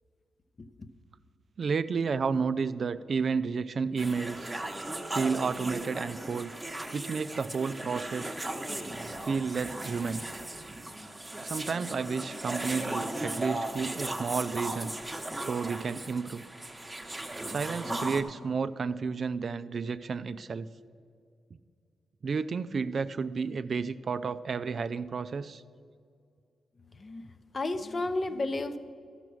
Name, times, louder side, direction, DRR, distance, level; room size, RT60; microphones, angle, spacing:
voice 1, 1.6-4.5 5.1-6.5 6.9-8.4 9.2-10.2 11.4-14.9 15.4-16.4 17.4-20.7 22.2-25.6, right 5 dB, 55° right, 13 dB, 0.3 m, -31 dB
sound 1, 4.0-18.2, right 1 dB, 15° right, 0.9 m, -37 dB
voice 2, 27.5-28.8, left 2 dB, 40° left, 10 dB, 0.6 m, -31 dB
12.5 x 5.9 x 6.2 m, 2.2 s
cardioid pair, 85°, 0 cm